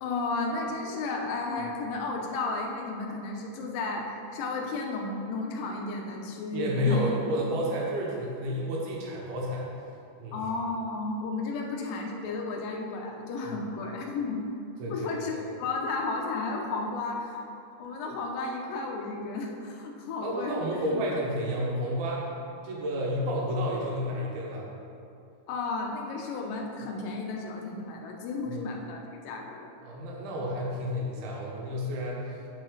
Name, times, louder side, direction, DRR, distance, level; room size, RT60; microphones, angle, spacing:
voice 1, 0.0-7.1 10.3-14.4 14.9-17.4 17.8-21.0 25.5-29.7, left 3 dB, 85° left, 0 dB, 2.0 m, -33 dB
voice 2, 6.5-9.6 10.2-10.4 14.8-15.1 20.2-22.3 22.6-24.7 28.5-28.6 29.8-32.4, equal, 70° right, -3 dB, 2.9 m, -30 dB
9.2 x 5.9 x 4.0 m, 2.6 s
omnidirectional pair, 5.0 m